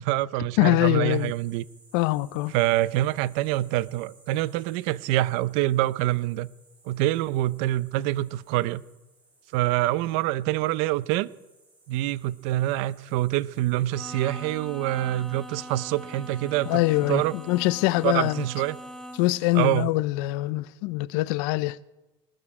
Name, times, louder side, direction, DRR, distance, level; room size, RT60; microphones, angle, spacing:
voice 1, 0.0-1.6 2.5-6.5 6.8-8.8 9.5-11.3 11.9-16.8 17.1-17.3 18.0-18.8 19.5-19.9, right 15 dB, 65° right, 0.5 m, -25 dB
voice 2, 0.6-1.3 1.9-2.5 16.7-18.4 19.2-21.8, left 19 dB, 75° left, 0.5 m, -24 dB
sound 1, 1.1-19.8, right 2 dB, 15° right, 5.9 m, -59 dB
Bowed string instrument, 13.9-19.4, equal, 5° left, 1.3 m, -42 dB
20.5 x 13.0 x 4.9 m
cardioid pair, 175°, 11 cm